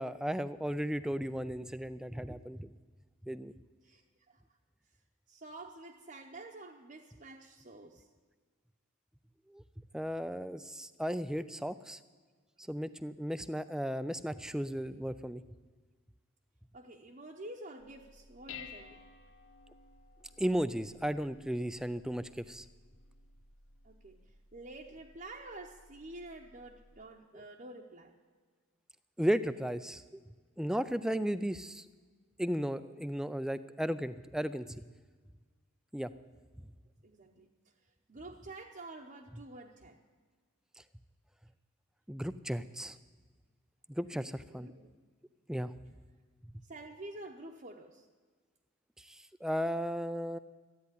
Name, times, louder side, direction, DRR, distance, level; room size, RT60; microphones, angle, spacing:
voice 1, 0.0-2.7 3.2-3.5 9.5-9.6 9.9-12.0 12.7-15.4 20.4-22.7 27.3-27.4 29.2-30.2 30.6-31.9 32.4-34.9 35.9-36.1 42.1-43.0 43.9-44.7 45.5-45.7 49.0-50.4, equal, 5° right, 14 dB, 0.3 m, -35 dB
voice 2, 5.3-8.1 16.7-19.0 23.8-24.2 24.5-28.1 37.0-37.5 38.1-40.0 44.1-44.2 44.5-44.9 46.6-48.1, right 2 dB, 40° right, -1 dB, 0.8 m, -48 dB
Dishes pots and pans, 17.8-27.0, left 6 dB, 75° left, 1.2 m, -55 dB
13.0 x 9.3 x 9.8 m, 1.5 s
head